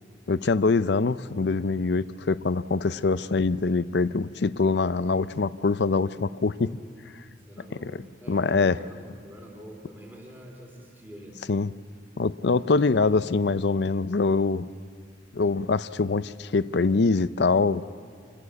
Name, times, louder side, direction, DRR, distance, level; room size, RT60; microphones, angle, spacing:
voice 1, 0.3-6.8 8.3-8.8 11.5-11.7 12.2-14.7 15.3-17.8, left 4 dB, 60° left, 15 dB, 0.5 m, -24 dB
voice 2, 7.5-11.5, equal, 10° right, -1 dB, 3.2 m, -45 dB
28.0 x 14.5 x 8.5 m, 2.4 s
head